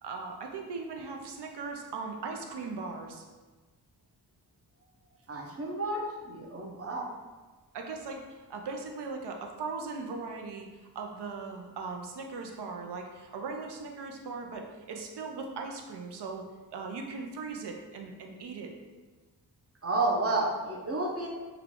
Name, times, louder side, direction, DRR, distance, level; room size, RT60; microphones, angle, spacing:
voice 1, 0.0-3.2 7.7-10.7 10.9-16.5 16.7-18.7, right 4 dB, 85° right, 2 dB, 0.6 m, -39 dB
voice 2, 5.3-7.1 19.8-21.3, right 2 dB, 35° right, 0 dB, 0.6 m, -31 dB
3.6 x 2.3 x 3.6 m, 1.3 s
wide cardioid pair, 90°, 40 cm